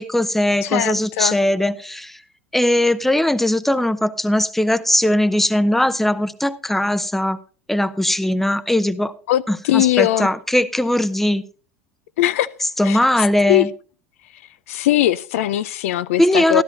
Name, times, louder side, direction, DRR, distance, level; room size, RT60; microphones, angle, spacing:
voice 1, 0.0-2.2 2.5-7.4 7.7-9.1 9.5-11.4 12.8-13.7 16.2-16.6, left 1 dB, 5° left, 0.6 m, -19 dB
voice 2, 0.6-1.4 9.3-10.3 12.2-12.5 12.8-13.0 13.5-13.6 14.7-16.6, left 14 dB, 75° left, 0.4 m, -19 dB
13.0 x 12.5 x 2.7 m
hypercardioid pair, 90°, 8 cm